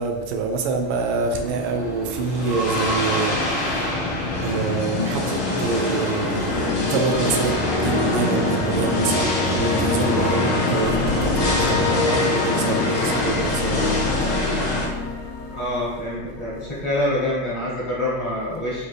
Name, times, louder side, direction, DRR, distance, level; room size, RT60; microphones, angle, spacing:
voice 1, 0.0-3.9 4.4-14.1, right 4 dB, 80° right, 4 dB, 1.3 m, -26 dB
sound 1, 0.8-14.9, left 2 dB, 90° left, 1.8 m, -25 dB
sound 2, 6.5-16.6, left 2 dB, 75° left, 0.8 m, -26 dB
voice 2, 15.5-18.9, left 1 dB, 30° left, -7 dB, 0.6 m, -26 dB
5.1 x 2.3 x 3.2 m, 1.2 s
omnidirectional pair, 2.3 m